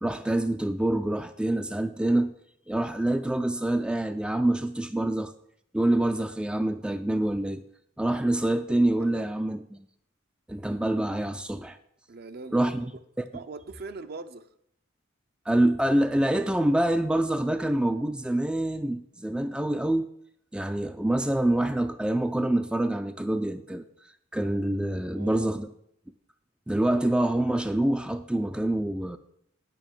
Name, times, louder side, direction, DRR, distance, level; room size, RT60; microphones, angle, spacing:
voice 1, 0.0-2.3 2.7-5.3 5.7-7.6 8.0-9.9 10.5-11.8 12.5-12.9 13.2-13.3 15.5-20.1 20.5-23.9 24.3-25.7 26.7-29.2, right 1 dB, 5° right, 0.3 m, -26 dB
voice 2, 12.1-13.0 13.3-14.5 25.1-25.7, right 3 dB, 50° right, 0.6 m, -41 dB
9.1 x 5.6 x 7.2 m
head